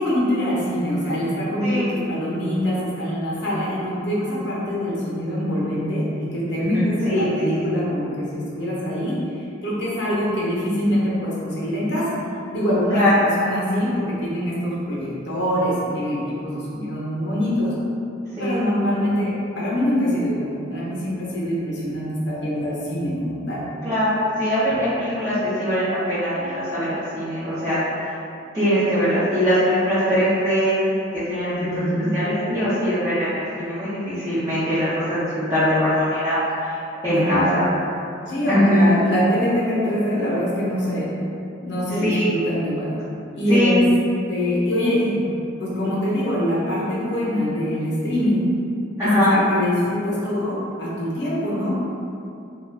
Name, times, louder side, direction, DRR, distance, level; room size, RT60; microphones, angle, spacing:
voice 1, 0.0-12.2 12.5-17.7 18.4-23.6 24.7-24.8 31.5-32.1 37.1-37.5 38.3-41.2 41.6-42.9 43.3-43.9 44.3-45.2 45.6-48.5 49.0-51.7, equal, 65° left, -6 dB, 0.7 m, -24 dB
voice 2, 6.6-7.3 12.9-13.1 18.4-18.6 23.8-27.8 28.5-31.9 32.1-36.7 37.0-37.7 38.5-38.9 42.0-42.3 43.5-43.8 49.0-49.4, equal, 20° right, -15 dB, 0.7 m, -21 dB
2.3 x 2.2 x 3.3 m, 2.6 s
head